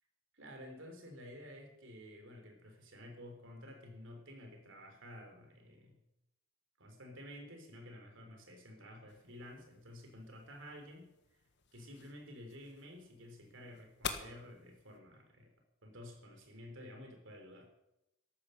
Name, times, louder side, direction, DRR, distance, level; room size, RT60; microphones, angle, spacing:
voice 1, 0.3-6.0 6.8-11.1 11.7-15.5 15.8-17.7, left 1 dB, 65° right, 4 dB, 3.7 m, -52 dB
sound 1, 9.1-15.0, left 6 dB, 55° left, 1.4 m, -49 dB
13.5 x 11.0 x 6.7 m, 0.89 s
head